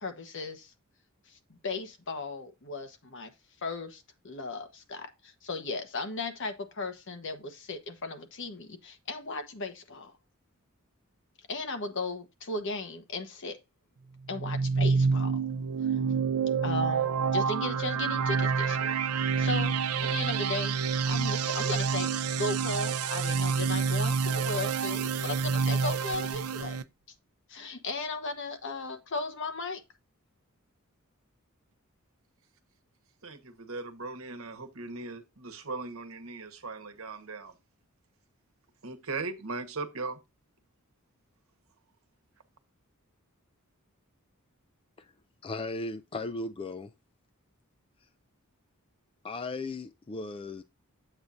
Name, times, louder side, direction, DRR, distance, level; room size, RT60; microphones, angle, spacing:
voice 1, 0.0-0.7 1.3-3.3 3.6-10.1 11.5-13.6 14.3-15.4 15.8-16.0 16.6-26.8 27.5-29.8, left 3 dB, 60° left, 1.1 m, -36 dB
sound 1, 14.3-26.8, right 5 dB, 85° right, 0.5 m, -28 dB
voice 2, 33.2-37.5 38.8-40.2, right 3 dB, 70° right, 1.1 m, -38 dB
voice 3, 45.4-46.9 49.2-50.6, left 2 dB, 25° left, 0.3 m, -36 dB
8.0 x 6.9 x 2.6 m
head